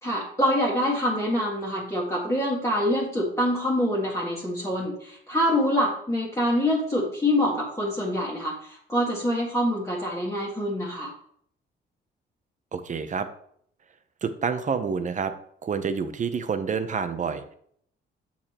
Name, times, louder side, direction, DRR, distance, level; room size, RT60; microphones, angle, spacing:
voice 1, 0.0-11.1, equal, 15° left, -4 dB, 1.9 m, -25 dB
voice 2, 12.7-13.3 14.2-15.3 15.6-17.5, right 6 dB, 40° right, 10 dB, 0.8 m, -28 dB
7.1 x 6.5 x 3.0 m, 0.65 s
cardioid pair, 90°, 20 cm